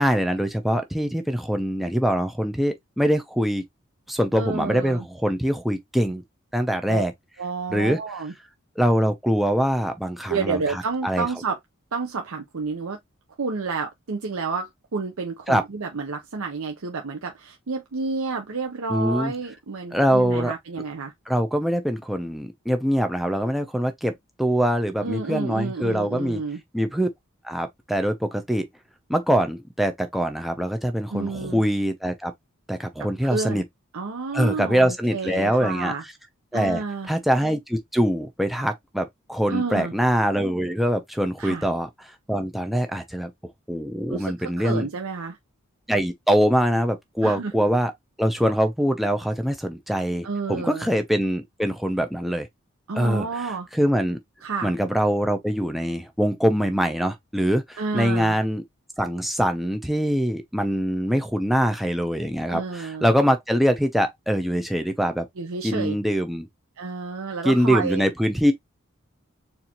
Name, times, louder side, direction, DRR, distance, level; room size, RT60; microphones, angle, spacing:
voice 1, 0.0-3.7 4.1-6.2 6.5-7.1 7.7-8.0 8.8-11.3 15.5-15.6 18.9-19.3 19.9-20.5 21.3-26.4 26.7-27.1 27.4-28.7 29.1-32.3 32.7-33.6 34.3-35.9 36.5-41.9 42.3-43.3 43.7-44.9 45.9-47.9 48.2-52.5 53.0-54.2 54.6-58.6 59.0-65.3 65.6-66.5 67.4-68.5, equal, ahead, 0.5 m, -23 dB
voice 2, 4.3-5.1 6.9-7.0 7.4-8.3 10.3-11.6 11.9-13.0 13.4-21.1 25.0-26.6 31.1-31.6 33.2-33.6 33.9-36.0 36.5-37.1 39.5-39.9 41.4-41.7 44.1-45.4 47.2-47.5 50.2-50.9 52.9-53.7 54.4-54.7 57.8-58.4 62.5-63.1 65.4-65.9 66.8-68.1, right 4 dB, 85° right, 0.7 m, -30 dB
4.2 x 2.6 x 2.9 m
head